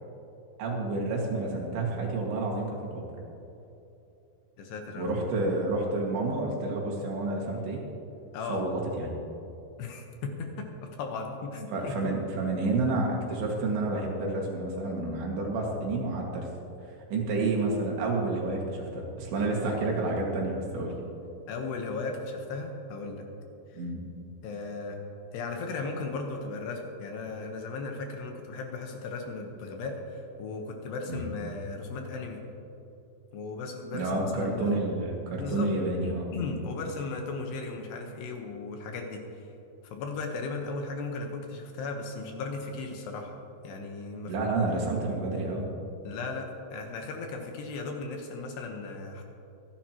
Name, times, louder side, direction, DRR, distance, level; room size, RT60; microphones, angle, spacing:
voice 1, 0.6-3.1 5.0-7.8 8.5-9.1 11.7-16.5 17.1-21.0 23.7-24.0 31.1-31.2 33.9-36.3 36.8-36.9 44.3-45.7, right 2 dB, 70° right, -1 dB, 4.1 m, -29 dB
voice 2, 4.6-5.1 8.3-8.6 9.8-11.9 21.5-23.3 23.7-23.8 24.4-25.0 25.3-32.4 33.3-34.8 35.4-35.7 36.0-39.2 39.8-43.3 43.6-44.3 46.0-49.2, left 3 dB, 70° left, 2 dB, 3.0 m, -36 dB
25.5 x 11.0 x 3.0 m, 2.9 s
omnidirectional pair, 5.3 m